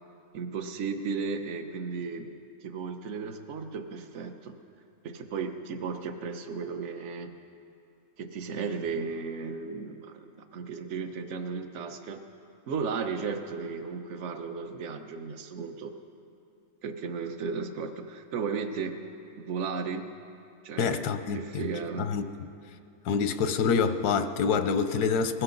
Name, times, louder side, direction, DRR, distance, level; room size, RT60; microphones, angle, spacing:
voice 1, 0.3-2.3 2.6-4.6 5.0-7.3 8.2-12.2 12.7-15.9 16.8-19.0 19.4-20.1 20.6-21.1 21.3-22.1, right 5 dB, 55° right, 7 dB, 1.1 m, -35 dB
voice 2, 20.8-21.6 22.0-22.3 23.0-25.4, left 5 dB, 90° left, 9 dB, 1.3 m, -26 dB
21.0 x 16.5 x 3.9 m, 2.6 s
omnidirectional pair, 1.6 m